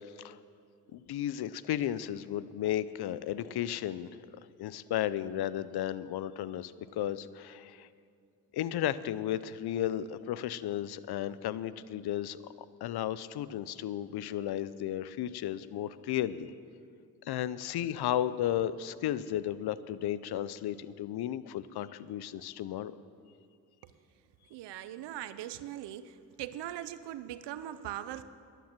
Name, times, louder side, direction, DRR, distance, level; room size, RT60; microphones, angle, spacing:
voice 1, 0.9-4.1 4.6-7.9 8.5-12.4 12.8-16.5 17.2-22.9, left 11 dB, 70° left, 17 dB, 0.6 m, -34 dB
voice 2, 24.5-26.1 26.4-28.2, right 12 dB, 85° right, 13 dB, 0.7 m, -40 dB
11.5 x 9.2 x 7.4 m, 2.4 s
supercardioid pair, 60°, 40 cm